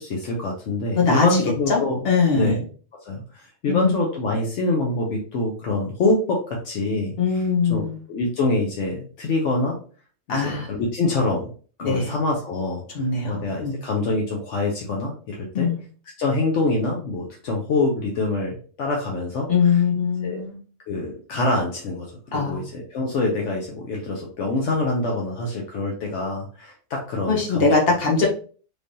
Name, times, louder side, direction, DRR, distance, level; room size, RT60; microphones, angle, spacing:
voice 1, 0.0-2.0 2.3-2.6 3.0-7.4 7.7-9.8 10.3-11.5 11.8-12.8 13.2-15.7 16.2-19.8 20.2-20.4 20.9-27.9, left 2 dB, 75° left, 0 dB, 1.0 m, -25 dB
voice 2, 1.0-1.3 1.7-1.8 2.0-2.6 3.7-3.9 7.2-8.0 10.3-10.7 11.8-12.1 12.9-13.7 15.5-15.8 19.5-20.5 22.3-22.6 27.3-28.3, left 5 dB, 55° left, -1 dB, 1.2 m, -21 dB
3.3 x 3.2 x 2.6 m, 0.41 s
omnidirectional pair, 1.3 m